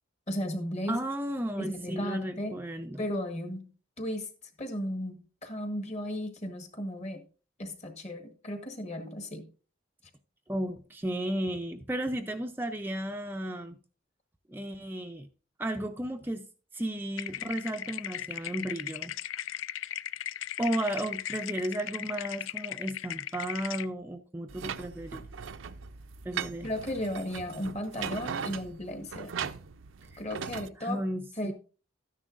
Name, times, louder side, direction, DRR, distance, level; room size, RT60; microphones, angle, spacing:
voice 1, 0.3-1.0 1.6-2.6 3.0-3.7 4.0-4.3 4.6-7.2 7.6-9.5 26.6-29.3 30.2-31.0 31.4-31.5, equal, 35° left, 1.5 m, -35 dB
voice 2, 0.9-3.0 10.5-13.8 14.5-15.3 15.6-16.4 16.7-19.1 20.6-25.2 26.2-26.7 30.1-30.2 30.8-31.5, right 1 dB, 10° right, 0.4 m, -34 dB
sound 1, 17.2-23.9, left 11 dB, 80° left, 0.4 m, -37 dB
sound 2, 24.5-30.7, right 7 dB, 80° right, 0.5 m, -39 dB
12.5 x 9.9 x 2.6 m
head